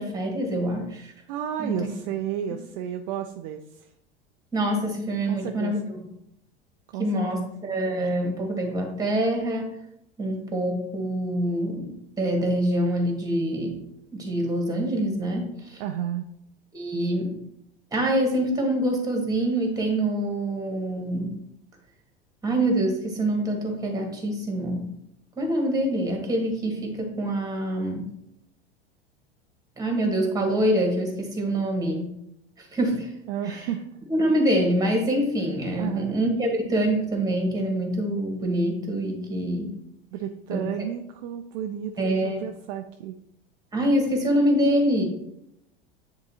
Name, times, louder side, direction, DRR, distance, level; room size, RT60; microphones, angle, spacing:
voice 1, 0.0-1.1 1.6-1.9 4.5-5.8 7.0-9.7 10.2-13.7 14.1-15.8 16.7-17.3 17.9-21.3 22.4-24.9 25.4-28.0 29.8-32.1 32.6-33.1 33.5-33.7 34.1-39.8 40.5-40.9 42.0-42.4 43.7-45.0, right 1 dB, 10° right, 2 dB, 1.9 m, -25 dB
voice 2, 1.3-3.9 5.3-5.8 6.9-7.1 7.3-7.5 15.8-16.3 33.3-34.0 35.8-36.2 40.1-43.1, right 10 dB, 45° right, 6 dB, 0.5 m, -32 dB
9.5 x 3.7 x 2.8 m, 0.78 s
figure-of-eight pair, 80°, 30 cm